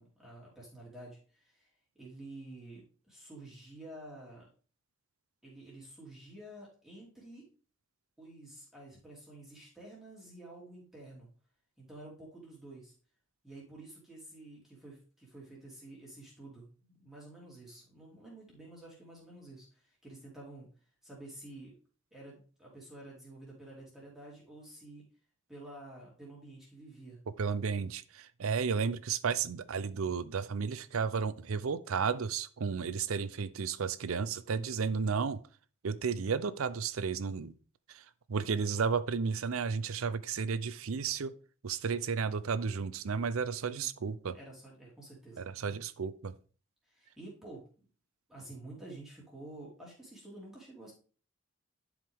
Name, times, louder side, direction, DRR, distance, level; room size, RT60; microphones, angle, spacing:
voice 1, 0.0-1.7 1.9-4.5 5.4-7.4 8.2-11.3 11.8-12.9 13.4-20.7 21.0-21.7 22.1-25.0 25.5-27.2 43.7-43.9 44.3-45.8 46.9-47.9 48.3-50.9, right 2 dB, ahead, 2.9 m, -50 dB
voice 2, 27.4-35.4 35.8-37.5 37.9-38.0 38.3-41.3 41.6-44.4 45.4-46.3, right 5 dB, 85° right, 0.5 m, -33 dB
11.0 x 4.8 x 3.6 m
head